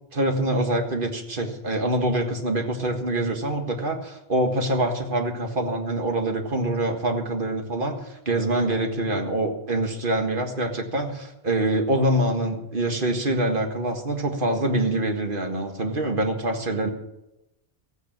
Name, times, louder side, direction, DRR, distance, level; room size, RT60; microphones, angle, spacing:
voice 1, 0.1-16.9, right 1 dB, 50° right, 4 dB, 1.8 m, -25 dB
15.0 x 9.1 x 7.2 m, 0.91 s
omnidirectional pair, 1.1 m